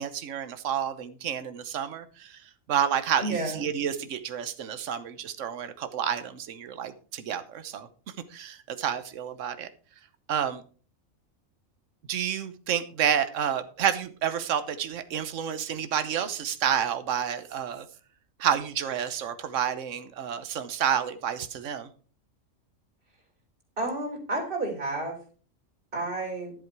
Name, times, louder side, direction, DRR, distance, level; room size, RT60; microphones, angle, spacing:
voice 1, 0.0-7.9 8.3-9.7 10.3-10.6 12.1-17.9 18.4-21.9, right 9 dB, 70° right, 10 dB, 1.3 m, -29 dB
voice 2, 3.2-3.6 23.8-25.2 25.9-26.5, right 2 dB, 40° right, 0 dB, 3.7 m, -31 dB
11.5 x 7.7 x 4.6 m, 0.40 s
omnidirectional pair, 1.4 m